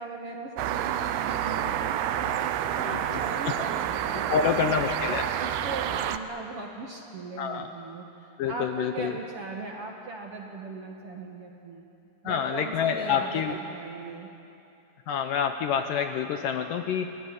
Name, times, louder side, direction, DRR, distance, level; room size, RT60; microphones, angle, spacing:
voice 1, 0.0-1.8 2.2-4.4 5.4-8.0 8.5-11.9 12.2-14.3, right 3 dB, 50° right, 1 dB, 1.9 m, -39 dB
sound 1, 0.6-6.2, right 10 dB, 85° right, 2.8 m, -29 dB
voice 2, 2.9-3.6 4.1-5.3 7.4-7.7 8.4-9.2 12.2-13.6 15.1-17.1, left 7 dB, 70° left, 7 dB, 2.2 m, -28 dB
26.5 x 17.5 x 9.8 m, 2.8 s
omnidirectional pair, 4.5 m